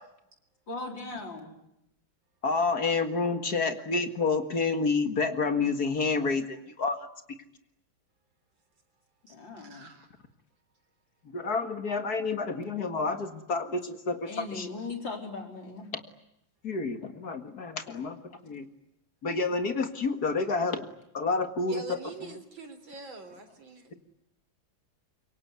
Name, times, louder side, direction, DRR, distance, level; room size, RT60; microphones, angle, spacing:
voice 1, 0.7-1.5 9.3-9.9 14.3-15.9 17.9-18.0, left 3 dB, 70° left, 3 dB, 4.9 m, -39 dB
voice 2, 2.4-7.0 11.3-14.7 16.6-18.2 18.4-18.7 19.2-20.9 21.1-22.4, left 4 dB, 50° left, 8 dB, 2.3 m, -29 dB
voice 3, 9.3-10.1 21.7-24.0, right 3 dB, 75° right, 8 dB, 4.4 m, -45 dB
26.0 x 23.5 x 9.5 m, 0.82 s
omnidirectional pair, 2.2 m